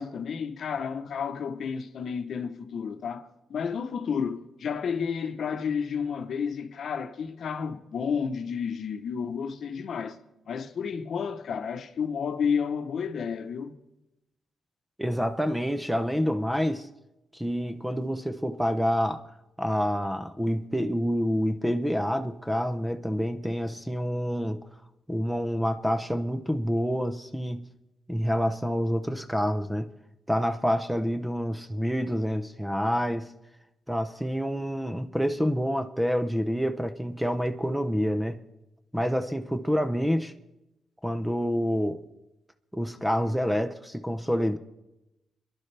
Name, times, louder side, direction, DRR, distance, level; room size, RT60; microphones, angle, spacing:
voice 1, 0.0-10.2 10.5-13.8, left 6 dB, 60° left, 0.9 m, -31 dB
voice 2, 15.0-16.9 17.3-19.2 19.6-24.7 25.1-27.7 28.1-29.9 30.3-33.3 33.9-38.4 38.9-40.3 41.0-42.0 42.7-44.6, equal, 5° right, 0.6 m, -27 dB
26.5 x 11.0 x 3.3 m
cardioid pair, 110°, 0 cm